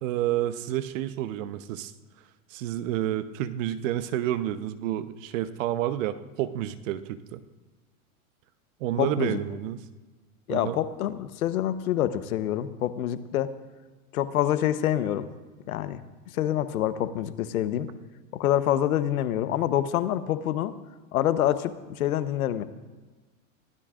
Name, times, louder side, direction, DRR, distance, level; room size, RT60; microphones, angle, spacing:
voice 1, 0.0-1.9 2.5-7.4 8.8-9.8 10.5-10.8, right 12 dB, 60° right, 12 dB, 1.0 m, -29 dB
voice 2, 9.0-9.4 10.5-13.5 14.1-15.3 15.7-16.0 16.3-17.9 18.3-20.7 21.1-22.6, left 11 dB, 75° left, 12 dB, 1.1 m, -26 dB
23.0 x 16.0 x 2.5 m, 1.3 s
hypercardioid pair, 110°, 43 cm